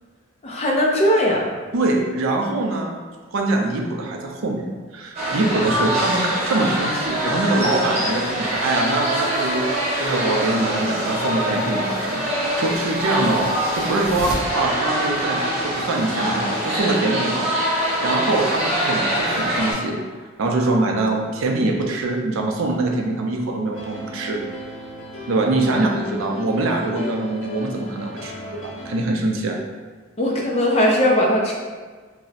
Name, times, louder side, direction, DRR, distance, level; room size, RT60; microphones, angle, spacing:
voice 1, 0.4-1.5 30.2-31.5, equal, 30° left, -1 dB, 0.4 m, -19 dB
voice 2, 1.7-3.0 3.3-9.7 10.0-20.0 20.4-24.4 25.3-29.6, right 2 dB, 70° right, 0 dB, 0.4 m, -23 dB
sound 1, 5.1-19.7, equal, 30° right, 0.8 m, -24 dB
sound 2, 23.7-29.0, left 2 dB, 65° left, 0.7 m, -36 dB
2.5 x 2.0 x 3.9 m, 1.5 s
head